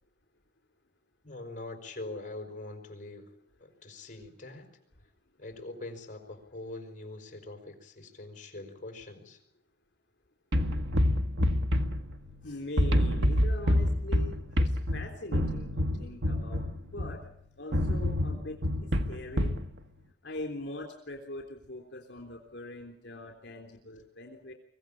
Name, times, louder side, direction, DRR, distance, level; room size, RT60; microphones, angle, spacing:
voice 1, 1.2-3.3 3.6-4.7 5.4-9.4, left 2 dB, 45° left, 5 dB, 5.2 m, -43 dB
sound 1, 10.5-12.4 12.8-17.2 17.7-19.7, left 1 dB, 80° right, 1.8 m, -27 dB
voice 2, 12.4-17.2 17.6-18.6 19.1-19.5 20.2-24.5, left 1 dB, 70° left, 2 dB, 3.5 m, -42 dB
24.5 x 16.5 x 8.7 m, 0.74 s
head